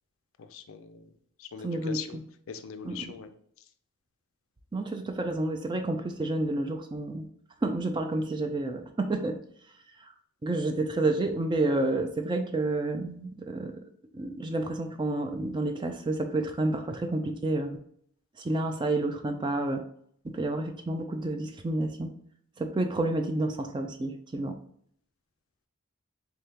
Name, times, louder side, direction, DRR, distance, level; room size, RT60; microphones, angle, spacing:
voice 1, 0.4-1.1 1.4-2.2 2.5-3.3, left 7 dB, 65° left, 10 dB, 0.4 m, -41 dB
voice 2, 1.6-2.2 2.8-3.1 4.7-7.2 7.6-9.4 10.0-10.1 10.4-13.8 14.1-17.8 18.4-19.8 20.2-22.1 22.6-24.5, right 2 dB, 20° right, 5 dB, 0.3 m, -30 dB
3.7 x 3.5 x 2.8 m, 0.64 s
head